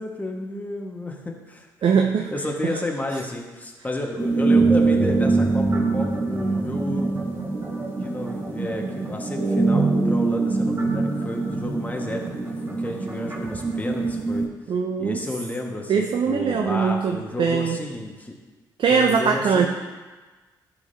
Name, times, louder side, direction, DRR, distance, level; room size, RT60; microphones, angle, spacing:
voice 1, 0.0-1.7 2.3-7.1 8.0-14.5 15.0-18.4 18.9-19.7, left 1 dB, 15° left, 0 dB, 1.6 m, -32 dB
voice 2, 1.8-2.3 2.6-2.7 14.7-15.2 15.9-17.8 18.8-19.7, right 6 dB, 55° right, 2 dB, 0.7 m, -21 dB
sound 1, 4.2-14.5, right 3 dB, 25° right, 1.9 m, -23 dB
12.5 x 5.0 x 2.8 m, 1.3 s
hypercardioid pair, 45°, 10 cm